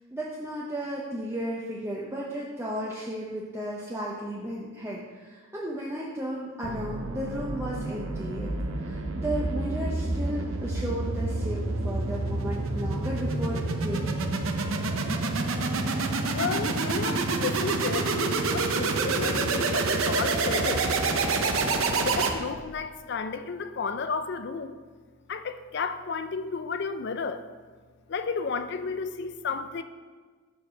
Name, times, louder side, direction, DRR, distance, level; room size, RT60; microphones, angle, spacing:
voice 1, 0.1-14.2, right 1 dB, 10° right, -5 dB, 0.7 m, -34 dB
sound 1, 6.6-22.7, right 3 dB, 70° right, 0.7 m, -28 dB
voice 2, 16.3-21.0 22.0-24.7 25.3-27.5 28.1-29.8, left 5 dB, 50° left, 10 dB, 0.4 m, -32 dB
7.0 x 4.7 x 6.3 m, 1.4 s
head